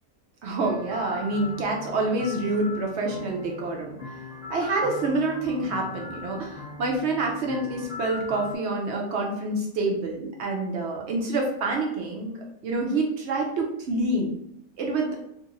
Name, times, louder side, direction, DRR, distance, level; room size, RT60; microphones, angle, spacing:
voice 1, 0.4-4.0 4.5-12.4 12.6-14.3 14.8-15.2, right 2 dB, 65° right, 0 dB, 0.7 m, -27 dB
sound 1, 0.6-8.5, left 4 dB, 25° left, 0.8 m, -39 dB
2.9 x 2.6 x 2.4 m, 0.77 s
omnidirectional pair, 1.6 m